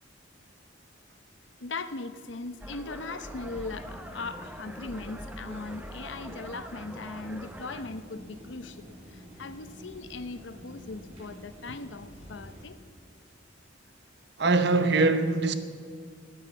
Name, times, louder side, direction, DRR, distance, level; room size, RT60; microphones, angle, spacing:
voice 1, 1.6-8.9 9.4-12.8, left 3 dB, 70° left, 0.7 m, -39 dB
sound 1, 2.6-7.8, equal, 10° right, 0.7 m, -44 dB
sound 2, 3.3-12.6, equal, 30° right, 3.5 m, -48 dB
voice 2, 14.4-15.5, right 3 dB, 60° right, 0.8 m, -22 dB
11.5 x 10.5 x 8.1 m
head